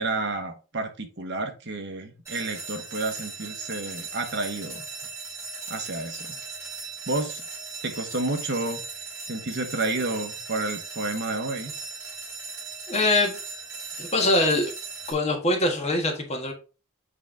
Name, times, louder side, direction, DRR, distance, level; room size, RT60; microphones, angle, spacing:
voice 1, 0.0-4.8 5.7-6.4 7.1-7.4 7.8-8.8 9.3-11.7, right 2 dB, 55° right, 1.1 m, -30 dB
sound 1, 2.3-15.1, right 4 dB, 15° right, 2.5 m, -38 dB
voice 2, 12.9-13.4 14.0-14.7 15.1-16.5, left 2 dB, 30° left, 1.4 m, -23 dB
8.1 x 3.4 x 3.7 m
head